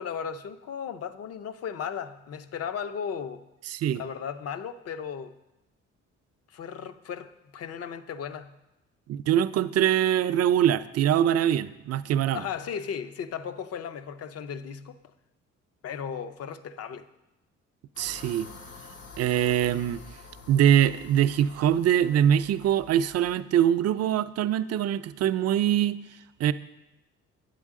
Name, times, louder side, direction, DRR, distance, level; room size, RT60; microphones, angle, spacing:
voice 1, 0.0-3.5 3.9-5.4 6.5-8.6 12.3-15.0 15.8-17.1, left 7 dB, 55° left, 0.6 m, -36 dB
voice 2, 3.7-4.0 9.1-12.4 18.0-18.5 19.2-20.0 20.5-26.0 26.4-26.5, right 10 dB, 55° right, 0.4 m, -23 dB
sound 1, 18.0-23.4, left 3 dB, 80° left, 1.8 m, -48 dB
8.4 x 8.0 x 3.6 m
cardioid pair, 90°, 30 cm